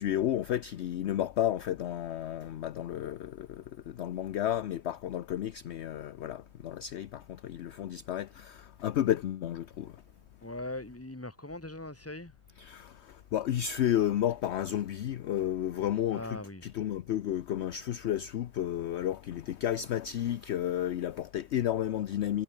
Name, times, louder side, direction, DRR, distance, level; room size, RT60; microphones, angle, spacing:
voice 1, 0.0-9.9 12.7-12.9 13.3-16.2 16.8-22.4, left 11 dB, 60° left, 0.8 m, -32 dB
voice 2, 10.4-12.3 16.1-16.7, left 2 dB, 10° left, 2.0 m, -40 dB
omnidirectional pair, 1.5 m